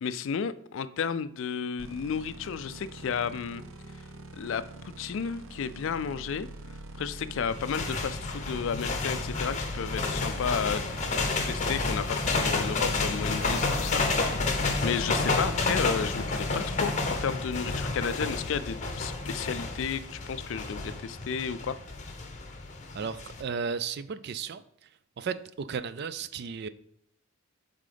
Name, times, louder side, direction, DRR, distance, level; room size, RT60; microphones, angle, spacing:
voice 1, 0.0-3.6 4.4-6.5 6.9-10.8 11.5-14.0 14.8-21.8, left 6 dB, 60° left, 15 dB, 0.3 m, -32 dB
sound 1, 1.8-15.3, right 2 dB, 65° right, 0.7 m, -45 dB
sound 2, 7.5-23.4, left 3 dB, 30° left, 0.7 m, -30 dB
voice 2, 22.9-24.6 25.2-26.7, right 6 dB, 45° right, 14 dB, 0.3 m, -34 dB
7.6 x 3.7 x 5.0 m, 0.76 s
head